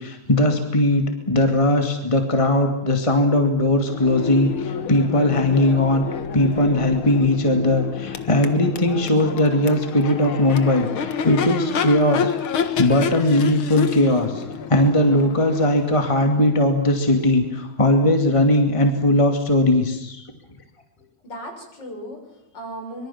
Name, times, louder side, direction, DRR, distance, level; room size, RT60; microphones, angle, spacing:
voice 1, 0.0-6.1 6.3-12.3 12.8-14.4 14.7-20.2, left 1 dB, 15° left, 5 dB, 2.4 m, -19 dB
Crowd / Race car auto racing / Accelerating revving vroom, 3.8-17.7, left 7 dB, 75° left, 2.3 m, -29 dB
voice 2, 21.0-23.1, equal, 55° left, 3 dB, 7.2 m, -37 dB
25.5 x 23.5 x 7.4 m, 0.86 s
omnidirectional pair, 2.3 m